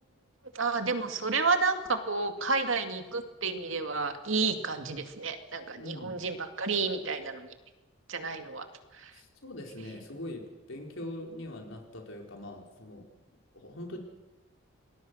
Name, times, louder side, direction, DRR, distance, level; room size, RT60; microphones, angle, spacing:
voice 1, 0.5-7.5 8.1-8.7 9.0-9.1, right 4 dB, 75° right, 6 dB, 2.3 m, -30 dB
voice 2, 5.8-6.2 9.1-13.1 13.5-14.0, left 1 dB, 75° left, 1 dB, 4.7 m, -42 dB
25.5 x 20.5 x 6.5 m, 1.1 s
head